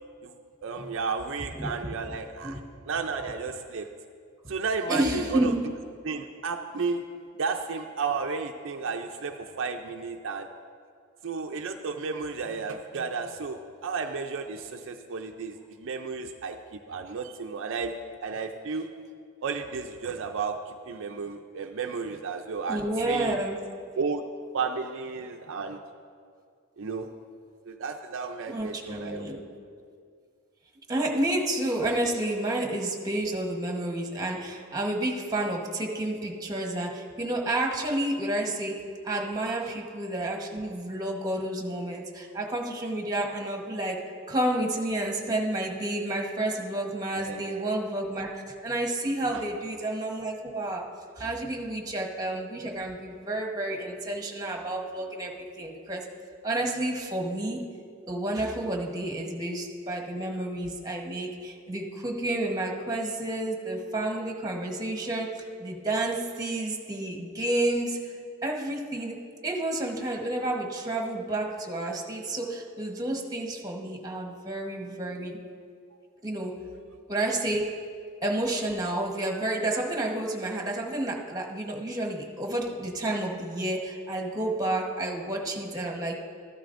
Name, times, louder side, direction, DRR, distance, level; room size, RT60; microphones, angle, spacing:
voice 1, 0.6-2.6 2.9-3.9 4.5-5.5 6.0-7.0 7.4-10.5 11.2-16.6 16.9-17.9 18.2-18.9 19.4-23.3 24.0-24.2 24.5-25.8 26.8-27.1 27.6-29.3 47.2-47.6 49.3-49.4, right 5 dB, 60° right, 4 dB, 0.5 m, -33 dB
voice 2, 1.5-1.9 2.4-2.6 4.9-5.7 22.7-23.6 28.5-29.4 30.9-56.1 56.4-57.7 58.1-68.1 68.4-75.4 76.2-76.6 77.1-77.8 78.2-86.2, right 1 dB, 15° right, 1 dB, 1.1 m, -30 dB
13.5 x 12.5 x 2.5 m, 2.2 s
head